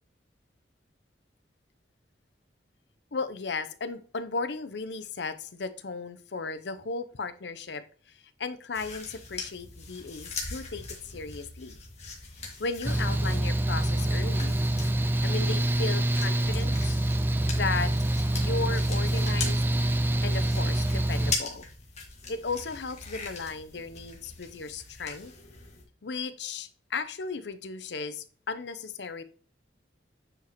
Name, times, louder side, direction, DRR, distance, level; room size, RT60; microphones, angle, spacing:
voice 1, 3.1-7.8 8.1-11.8 12.6-14.6 15.2-17.0 17.5-17.9 18.3-19.6 20.2-21.7 22.3-25.3 26.0-29.2, left 4 dB, 70° left, 12 dB, 0.7 m, -35 dB
sound 1, 8.7-25.8, left 4 dB, 40° left, 2.0 m, -41 dB
Mechanical fan, 12.8-21.3, right 1 dB, 10° right, 0.4 m, -26 dB
9.0 x 4.9 x 3.0 m, 0.42 s
head